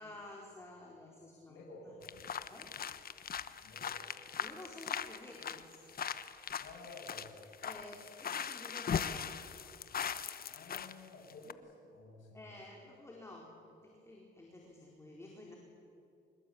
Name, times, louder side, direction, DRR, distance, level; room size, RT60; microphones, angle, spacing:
voice 1, 0.0-2.0 2.5-2.7 4.4-5.8 6.4-6.6 7.6-9.3 12.3-15.6, left 1 dB, 15° left, -2 dB, 4.3 m, -52 dB
voice 2, 1.5-2.5 3.6-4.0 6.5-7.3 10.5-12.4, left 2 dB, 75° left, -2 dB, 7.5 m, -53 dB
sound 1, 2.0-10.9 11.3-11.5, left 7 dB, 50° left, 1.1 m, -40 dB
25.5 x 21.0 x 8.7 m, 2.6 s
cardioid pair, 90°, 20 cm